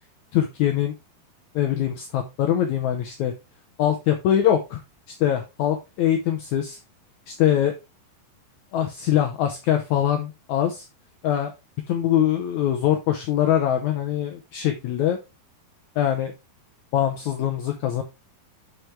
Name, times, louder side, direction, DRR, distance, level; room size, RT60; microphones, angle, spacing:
voice 1, 0.3-0.9 1.6-3.3 3.8-4.8 5.2-6.8 7.3-7.7 8.7-10.9 11.2-11.5 11.9-15.2 16.0-16.3 16.9-18.0, left 10 dB, 80° left, 5 dB, 1.7 m, -23 dB
8.0 x 6.2 x 3.2 m, 0.24 s
omnidirectional pair, 4.5 m